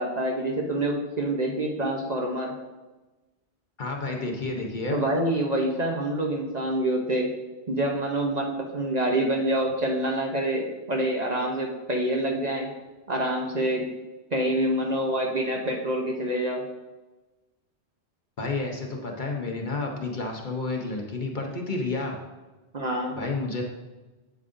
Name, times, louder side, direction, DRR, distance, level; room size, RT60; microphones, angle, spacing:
voice 1, 0.0-2.5 4.9-7.3 7.7-12.7 13.1-13.9 14.3-16.6 22.7-23.2, right 1 dB, 40° right, 0 dB, 0.8 m, -26 dB
voice 2, 3.8-5.0 18.4-22.2 23.2-23.6, left 3 dB, 45° left, 1 dB, 0.9 m, -30 dB
8.4 x 7.2 x 2.6 m, 1.1 s
omnidirectional pair, 1.2 m